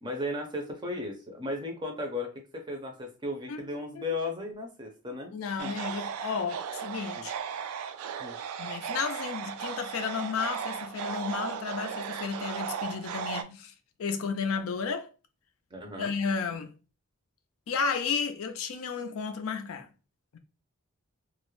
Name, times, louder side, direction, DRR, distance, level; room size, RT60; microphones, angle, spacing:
voice 1, 0.0-5.3 5.6-5.8 7.2-7.3 8.2-8.4 15.7-16.2, left 2 dB, 20° right, 0.5 m, -35 dB
voice 2, 5.3-7.3 8.6-13.7 14.0-15.1 16.0-16.7 17.7-19.9 20.3-20.4, left 5 dB, 70° left, 0.4 m, -33 dB
sound 1, 5.6-13.4, right 7 dB, 85° right, 0.3 m, -36 dB
2.3 x 2.0 x 3.0 m
head